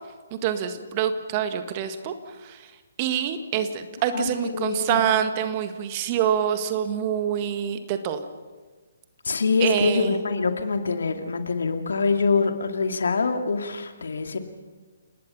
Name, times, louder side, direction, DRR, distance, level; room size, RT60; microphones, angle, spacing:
voice 1, 0.3-2.7 3.0-8.2 9.6-10.2, right 9 dB, 30° right, 8 dB, 1.8 m, -26 dB
voice 2, 4.1-5.0 9.2-14.4, left 4 dB, 60° left, 6 dB, 2.3 m, -25 dB
29.5 x 20.0 x 5.7 m, 1.4 s
figure-of-eight pair, 135°, 0 cm